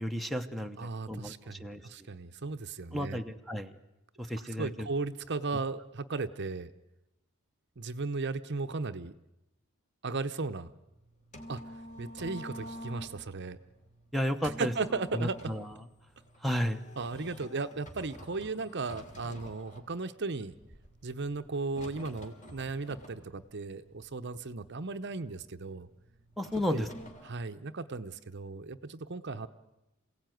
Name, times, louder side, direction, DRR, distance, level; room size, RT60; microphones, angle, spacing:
voice 1, 0.0-1.9 2.9-3.7 4.2-4.9 14.1-14.7 15.1-15.7 16.4-16.8 26.4-26.9, equal, ahead, 9 dB, 0.9 m, -33 dB
voice 2, 0.8-3.2 4.6-6.7 7.8-9.1 10.0-10.7 11.5-11.6 12.0-13.6 14.6-15.4 17.0-20.5 21.0-25.9 26.7-26.9 27.2-29.5, right 3 dB, 50° right, 11 dB, 0.8 m, -36 dB
sound 1, 10.9-27.3, equal, 35° left, 3.1 m, -49 dB
27.5 x 17.0 x 9.3 m, 0.96 s
head